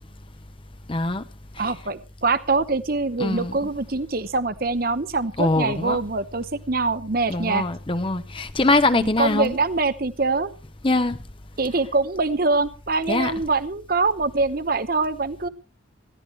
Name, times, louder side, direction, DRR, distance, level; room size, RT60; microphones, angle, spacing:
voice 1, 0.9-1.2 1.5-1.7 3.2-3.6 5.4-6.0 7.3-9.5 10.8-11.2 13.1-13.3, left 2 dB, 25° left, 0.7 m, -22 dB
voice 2, 1.6-7.7 8.9-10.5 11.6-15.5, right 3 dB, 45° right, 0.9 m, -24 dB
21.0 x 15.5 x 3.2 m
head